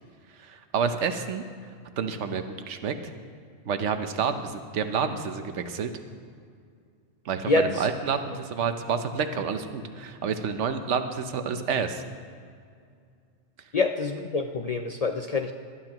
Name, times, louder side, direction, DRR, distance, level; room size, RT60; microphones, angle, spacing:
voice 1, 0.4-1.4 2.0-2.9 3.7-5.9 7.2-12.0, right 6 dB, 85° right, 8 dB, 1.1 m, -29 dB
voice 2, 7.4-7.9 13.7-15.5, left 3 dB, 55° left, 5 dB, 0.4 m, -26 dB
19.5 x 11.0 x 3.0 m, 2.2 s
omnidirectional pair, 1.2 m